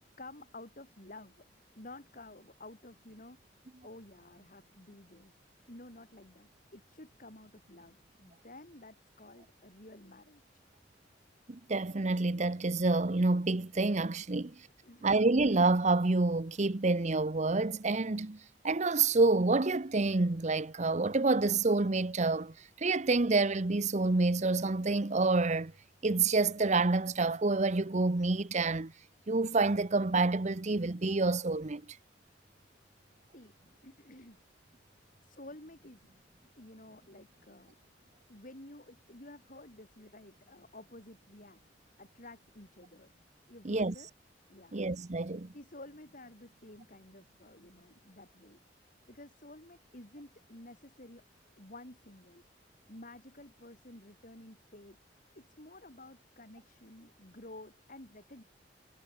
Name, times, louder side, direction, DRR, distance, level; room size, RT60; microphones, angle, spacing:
voice 1, 0.0-1.4 1.7-3.4 3.8-5.4 5.7-10.6 14.4-14.5 14.8-15.1 33.2-34.4 35.2-36.1 36.6-37.7 38.3-41.6 42.0-43.1 43.5-44.1 44.5-44.8 45.5-48.6 49.1-51.2 51.6-52.4 52.9-55.0 55.3-58.4, left 1 dB, 50° left, 4.5 m, -52 dB
voice 2, 11.5-14.5 15.0-18.4 18.6-25.7 26.0-28.9 29.3-31.8 43.6-43.9 44.7-45.5, right 3 dB, 40° right, 0.9 m, -28 dB
head